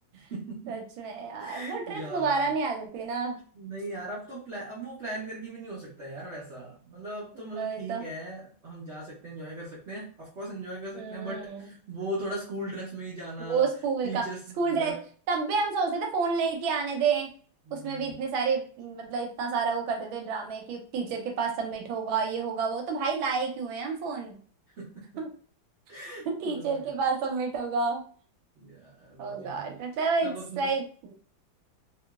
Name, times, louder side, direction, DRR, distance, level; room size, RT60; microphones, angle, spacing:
voice 1, 0.1-0.8 1.4-2.5 3.5-13.7 14.0-15.0 17.6-18.2 24.8-25.2 25.9-26.9 28.6-29.8 30.2-30.7, right 1 dB, 65° right, -7 dB, 0.6 m, -39 dB
voice 2, 0.7-3.4 7.6-8.1 10.9-11.7 13.4-14.2 14.6-14.9 15.3-17.3 17.7-24.4 25.2-25.3 26.2-28.0 29.2-31.1, right 5 dB, 90° right, 2 dB, 1.4 m, -29 dB
2.9 x 2.5 x 2.3 m, 0.44 s
omnidirectional pair, 2.1 m